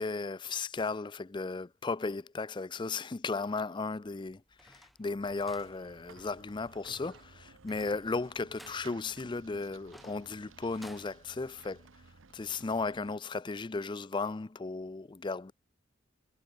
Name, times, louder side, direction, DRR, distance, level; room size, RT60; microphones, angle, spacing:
voice 1, 0.0-11.8 12.3-15.5, left 3 dB, 25° left, 0.4 m, -35 dB
sound 1, 4.1-11.1, equal, ahead, 1.1 m, -58 dB
sound 2, 5.2-13.1, right 4 dB, 85° right, 1.1 m, -56 dB
head